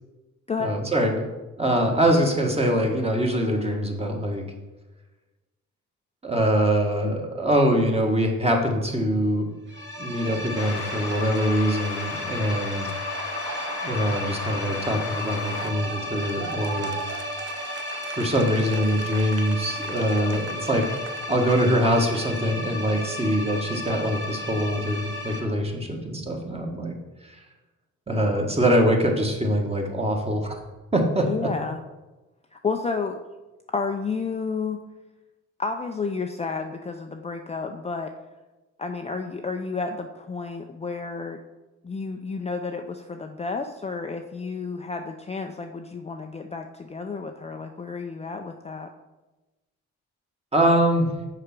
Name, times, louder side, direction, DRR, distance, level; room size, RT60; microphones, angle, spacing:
voice 1, 0.6-1.3 1.6-4.4 6.2-9.5 10.0-12.9 13.8-16.9 18.1-20.8 21.3-26.9 27.2-27.4 28.1-30.5 30.9-31.5 50.5-51.1, equal, 20° right, 2 dB, 1.6 m, -23 dB
sound 1, 9.7-25.4, left 2 dB, 40° right, 2.0 m, -34 dB
sound 2, 10.5-15.7, left 10 dB, 70° left, 0.6 m, -36 dB
Laughter, 13.0-22.8 23.1-25.1, right 8 dB, 55° right, 0.7 m, -41 dB
voice 2, 31.3-31.8 32.5-33.2 33.7-34.8 35.6-38.1 38.8-41.4 41.8-48.9, left 4 dB, 20° left, 4 dB, 0.5 m, -31 dB
6.5 x 4.9 x 5.9 m, 1.1 s
cardioid pair, 90°, 30 cm